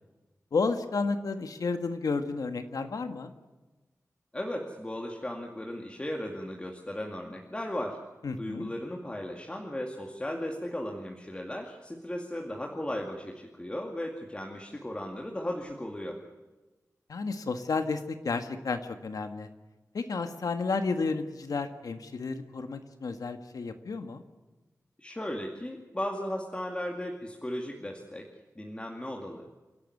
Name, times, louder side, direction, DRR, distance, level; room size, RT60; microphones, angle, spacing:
voice 1, 0.5-3.3 8.2-8.7 17.1-19.5 19.9-24.2, left 4 dB, 85° left, 7 dB, 1.7 m, -32 dB
voice 2, 4.3-8.0 8.4-16.2 25.0-28.3 28.6-29.5, left 1 dB, 20° left, 0 dB, 2.3 m, -36 dB
28.0 x 12.0 x 9.7 m, 1.2 s
wide cardioid pair, 115°, 6 cm